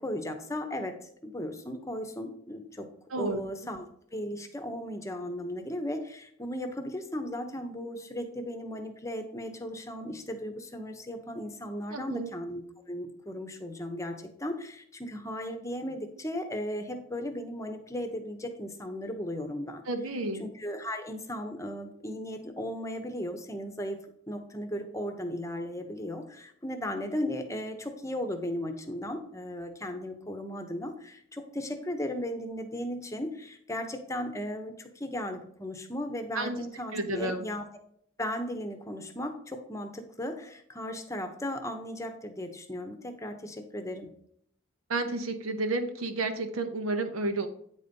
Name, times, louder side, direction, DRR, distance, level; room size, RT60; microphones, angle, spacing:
voice 1, 0.0-2.9 3.1-3.8 4.1-19.8 20.4-24.0 24.3-37.7 38.2-44.1, left 1 dB, 15° left, 6 dB, 0.8 m, -36 dB
voice 2, 3.1-3.4 11.9-12.3 19.9-20.4 36.3-36.6 36.9-37.4 44.9-47.5, right 2 dB, 85° right, 6 dB, 0.9 m, -31 dB
9.1 x 4.1 x 5.3 m, 0.66 s
head